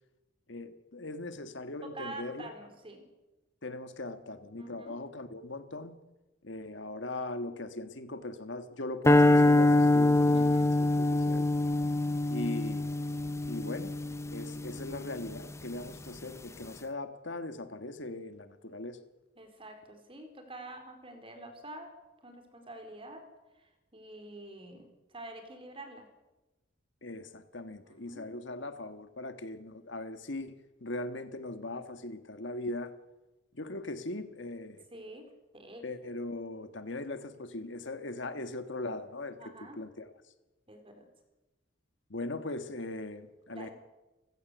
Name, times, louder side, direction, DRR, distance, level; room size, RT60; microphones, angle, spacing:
voice 1, 0.5-2.5 3.6-6.0 6.4-11.5 12.3-12.9 13.5-14.0 14.3-19.0 27.0-32.9 33.5-34.8 35.8-40.1 42.1-43.7, left 2 dB, 65° left, 10 dB, 1.6 m, -40 dB
voice 2, 1.8-3.1 4.6-5.0 10.3-10.7 19.4-21.9 22.2-23.3 23.5-26.1 27.8-28.3 34.9-35.8 39.4-39.8 40.7-41.1 42.7-42.8 43.5-43.7, right 2 dB, 25° right, 6 dB, 4.3 m, -47 dB
sound 1, 9.1-15.4, left 2 dB, 15° left, 0.7 m, -25 dB
29.5 x 15.5 x 8.1 m, 1.1 s
head